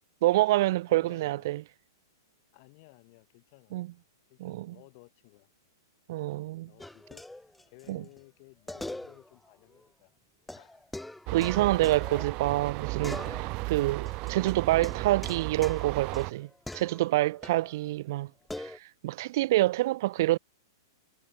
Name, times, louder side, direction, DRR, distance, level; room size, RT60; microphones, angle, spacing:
voice 1, 0.2-1.6 3.7-3.9 4.4-4.7 6.1-6.7 7.9-8.0 11.3-18.3 18.6-20.4, right 17 dB, 55° right, 0.3 m, -27 dB
voice 2, 0.8-1.6 2.5-5.5 6.2-7.3 7.7-10.1 10.5-10.8 18.2-18.4 20.2-20.4, left 29 dB, 45° left, 3.7 m, -57 dB
sound 1, 6.8-7.9 8.2-8.3 8.7-9.5 9.7-9.8 10.5-12.7 13.0-13.7 14.0-17.7 18.5-18.8, left 1 dB, 5° left, 1.0 m, -43 dB
sound 2, 11.3-16.3, right 24 dB, 40° right, 0.8 m, -35 dB
hypercardioid pair, 130°, 2 cm